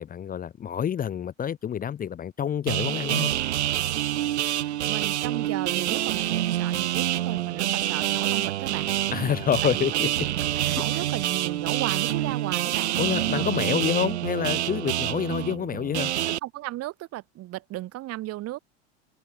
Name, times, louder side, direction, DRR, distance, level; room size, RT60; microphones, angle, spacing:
voice 1, 0.0-3.3 9.1-10.1 10.6-11.0 13.0-16.1, left 9 dB, 25° left, 0.9 m, -28 dB
sound 1, 2.7-16.4, right 13 dB, 85° right, 2.6 m, -27 dB
voice 2, 4.5-8.9 9.6-13.0 13.3-13.8 16.4-18.6, right 16 dB, 45° right, 2.1 m, -35 dB
hypercardioid pair, 95°, 33 cm